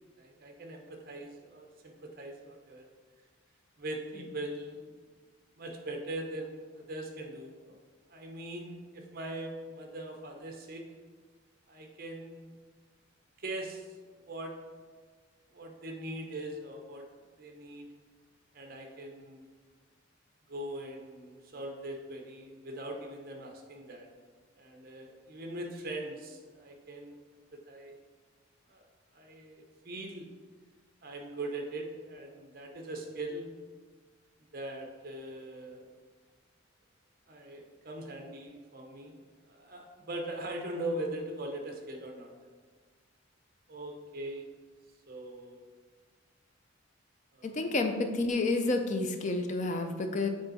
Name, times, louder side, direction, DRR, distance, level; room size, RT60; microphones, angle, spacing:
voice 1, 0.2-2.9 3.8-4.9 5.6-7.8 8.1-10.8 11.7-12.5 13.4-13.9 14.2-14.5 15.5-17.1 17.4-17.9 18.5-19.5 20.5-24.1 24.6-27.1 27.7-28.0 28.7-28.9 29.1-30.3 31.0-33.5 34.5-35.9 37.3-39.1 39.5-42.3 43.7-44.4 45.1-45.6 47.3-47.7, right 1 dB, 45° right, 2 dB, 0.9 m, -41 dB
voice 2, 47.4-50.3, left 2 dB, 35° left, 6 dB, 0.5 m, -30 dB
6.7 x 3.9 x 4.1 m, 1.5 s
head